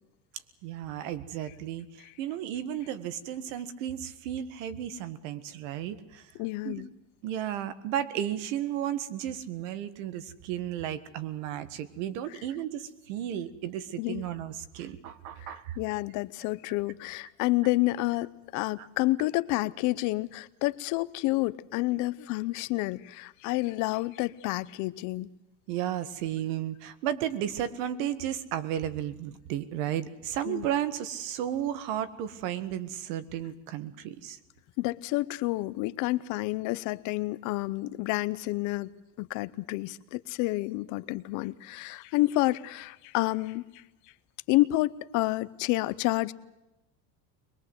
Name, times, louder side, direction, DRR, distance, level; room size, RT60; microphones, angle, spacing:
voice 1, 0.6-6.3 6.6-6.8 7.2-15.8 18.8-18.9 25.7-34.4, right 11 dB, 80° right, 1.7 m, -34 dB
voice 2, 6.4-6.9 14.0-14.2 15.4-25.3 30.5-30.7 34.8-38.9 39.2-43.8 44.5-46.3, left 19 dB, 50° left, 0.8 m, -29 dB
22.5 x 21.5 x 8.0 m
cardioid pair, 175°, 38 cm